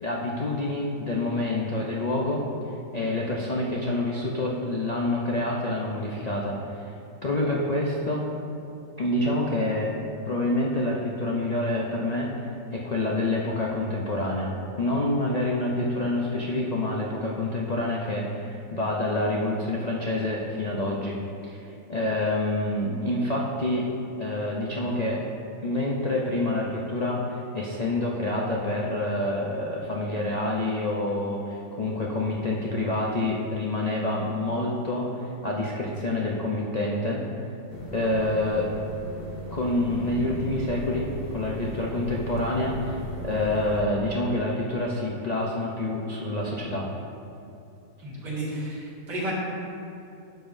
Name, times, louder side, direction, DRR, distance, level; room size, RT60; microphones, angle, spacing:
voice 1, 0.0-2.4 2.9-6.9 7.2-8.3 9.0-9.9 10.2-12.3 12.7-14.5 14.8-21.2 21.4-21.6 21.9-23.9 24.2-25.2 25.6-37.2 37.9-38.7 39.5-46.9, left 1 dB, 80° left, -3 dB, 0.3 m, -27 dB
sound 1, 37.7-43.8, equal, 45° left, 0.8 m, -37 dB
voice 2, 48.0-49.3, right 1 dB, 75° right, -8 dB, 2.7 m, -32 dB
11.5 x 7.0 x 2.6 m, 2.7 s
omnidirectional pair, 1.8 m